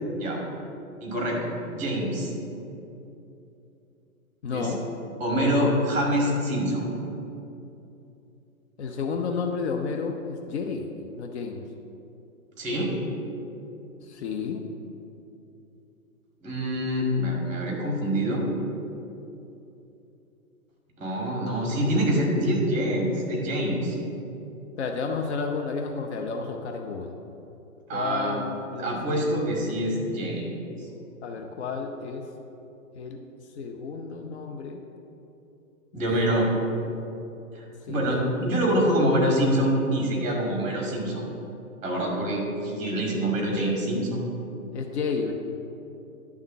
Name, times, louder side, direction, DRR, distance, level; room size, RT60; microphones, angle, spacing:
voice 1, 1.0-2.3 4.5-4.7 5.2-6.8 12.6-12.9 16.4-18.4 21.0-23.9 27.9-28.5 28.8-30.5 35.9-36.5 37.5-41.3 41.8-44.2, equal, 15° right, -1 dB, 2.1 m, -25 dB
voice 2, 4.4-4.8 8.8-11.6 14.0-14.7 24.8-27.1 27.9-29.8 31.2-32.2 32.9-33.2 33.6-34.8 35.9-36.4 36.8-37.0 37.9-38.1 44.7-45.3, left 5 dB, 50° left, 3 dB, 0.8 m, -32 dB
10.5 x 3.6 x 6.5 m, 2.8 s
hypercardioid pair, 125°, 42 cm